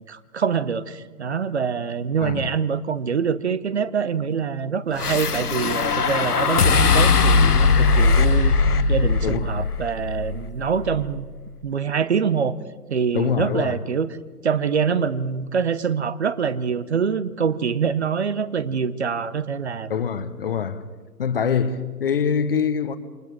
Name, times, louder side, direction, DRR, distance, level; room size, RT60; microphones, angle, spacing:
voice 1, 0.1-8.6 8.9-11.3 11.6-12.6 12.9-14.1 14.4-20.0, right 6 dB, 45° right, 1.0 m, -25 dB
voice 2, 2.2-2.5 9.2-9.8 13.1-13.8 19.9-20.9 21.2-23.0, left 7 dB, 35° left, 1.1 m, -24 dB
sound 1, 5.0-11.3, left 4 dB, 70° left, 1.1 m, -20 dB
28.0 x 23.0 x 4.6 m
figure-of-eight pair, 135°, 47 cm